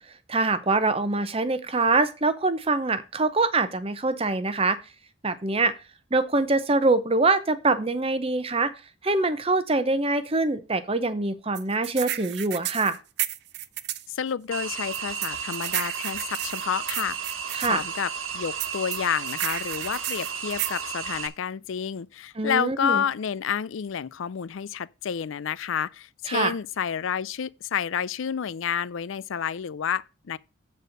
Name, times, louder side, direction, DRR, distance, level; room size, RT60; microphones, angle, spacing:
voice 1, 0.3-4.8 5.2-5.7 6.1-8.7 9.0-13.0 17.5-17.8 22.4-23.0 26.3-26.5, right 3 dB, 30° right, 0.8 m, -24 dB
sound 1, 11.6-14.1 14.9-17.7 18.6-20.8, right 14 dB, 55° right, 0.5 m, -32 dB
voice 2, 14.1-30.4, left 8 dB, 70° left, 0.4 m, -30 dB
sound 2, 14.5-21.3, right 7 dB, 80° right, 1.3 m, -33 dB
8.1 x 4.3 x 6.5 m
head